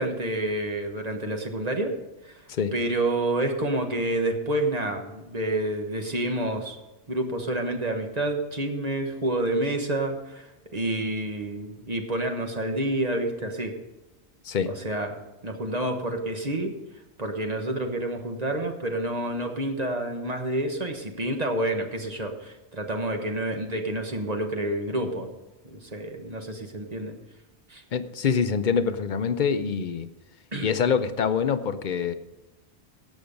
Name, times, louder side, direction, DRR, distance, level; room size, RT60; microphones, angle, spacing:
voice 1, 0.0-1.9 2.2-2.4 2.7-6.8 7.1-13.7 14.7-16.7 17.2-25.3 25.6-27.1 27.7-27.8 30.5-30.7, right 1 dB, 35° right, 4 dB, 1.3 m, -28 dB
voice 2, 27.9-30.1 30.6-32.1, left 6 dB, 50° left, 11 dB, 0.7 m, -25 dB
17.0 x 6.3 x 5.2 m, 0.98 s
omnidirectional pair, 1.2 m